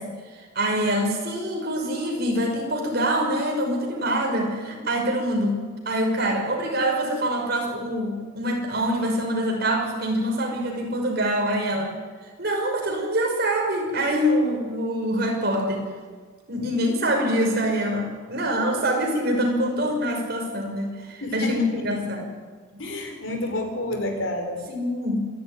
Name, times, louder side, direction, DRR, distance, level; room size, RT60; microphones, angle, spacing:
voice 1, 0.0-11.9 12.4-15.9 16.5-22.3 22.7-22.8 24.7-25.3, equal, 50° right, 1 dB, 5.7 m, -25 dB
voice 2, 21.2-21.7 22.0-22.1 22.8-24.7, left 1 dB, 70° left, 5 dB, 4.5 m, -29 dB
26.5 x 12.0 x 9.8 m, 1.5 s
head